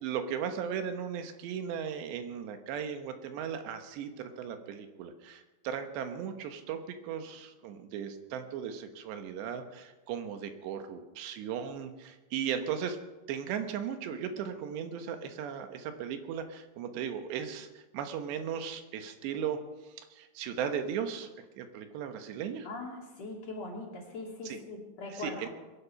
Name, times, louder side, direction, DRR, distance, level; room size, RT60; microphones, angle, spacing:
voice 1, 0.0-13.0 13.3-22.7 24.4-24.6 25.1-25.5, right 8 dB, 85° right, 7 dB, 3.4 m, -37 dB
voice 2, 22.6-25.5, left 2 dB, 40° left, -1 dB, 3.8 m, -41 dB
22.5 x 11.0 x 5.8 m, 1.1 s
omnidirectional pair, 4.9 m